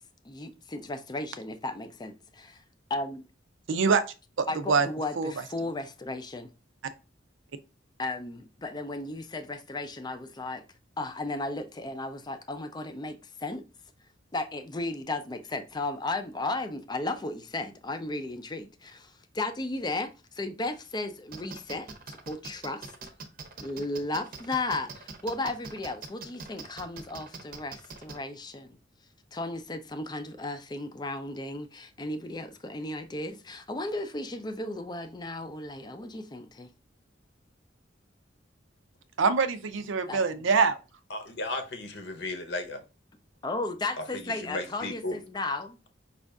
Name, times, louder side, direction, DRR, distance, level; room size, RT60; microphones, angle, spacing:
voice 1, 0.2-2.6 2.9-3.3 4.5-6.5 8.0-10.6 11.0-13.6 14.3-22.9 23.6-28.8 29.3-36.7 40.1-40.2 43.4-45.8, left 2 dB, 20° left, 0.5 m, -35 dB
voice 2, 3.7-4.0 4.4-4.9 5.2-5.3 39.2-40.8, right 5 dB, 80° right, 0.5 m, -24 dB
sound 1, 21.3-28.2, right 4 dB, 50° right, 0.7 m, -42 dB
voice 3, 41.1-42.8 44.0-45.2, left 2 dB, 65° left, 0.9 m, -35 dB
5.3 x 2.5 x 3.5 m
head